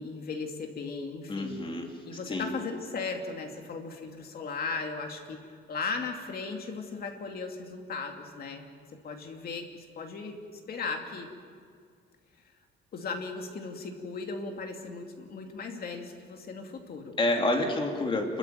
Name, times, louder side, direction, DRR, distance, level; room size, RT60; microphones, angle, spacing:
voice 1, 0.0-1.6 2.1-8.6 9.0-11.3 12.9-17.2, left 4 dB, 50° left, 3 dB, 2.6 m, -37 dB
voice 2, 1.3-2.6 17.2-18.4, left 2 dB, 25° left, 2 dB, 2.6 m, -29 dB
28.5 x 13.5 x 9.3 m, 2.1 s
cardioid pair, 170°, 20 cm